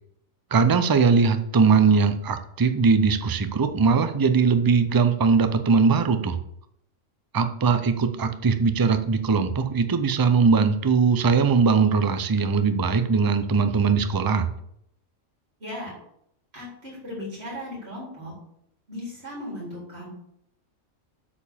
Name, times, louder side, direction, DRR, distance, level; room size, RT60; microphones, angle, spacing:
voice 1, 0.5-6.4 7.3-14.5, right 5 dB, 35° right, 9 dB, 0.3 m, -20 dB
voice 2, 15.6-15.9 16.5-18.3 18.9-20.1, left 1 dB, 50° right, -5 dB, 4.3 m, -36 dB
8.5 x 4.8 x 7.2 m, 0.74 s
omnidirectional pair, 1.4 m